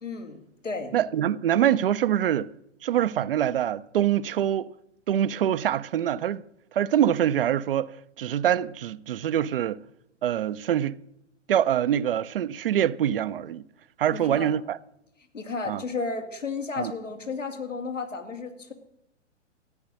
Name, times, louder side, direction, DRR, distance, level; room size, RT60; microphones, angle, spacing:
voice 1, 0.0-0.9 14.1-14.5 15.3-18.7, left 4 dB, 85° left, 2.5 m, -33 dB
voice 2, 0.9-2.5 2.8-4.7 5.1-6.4 6.7-7.9 8.2-9.8 10.2-11.0 11.5-13.6 14.0-14.8 15.7-15.8 16.8-16.9, right 10 dB, 50° right, 0.5 m, -24 dB
14.0 x 9.5 x 6.3 m
figure-of-eight pair, 115°, 37 cm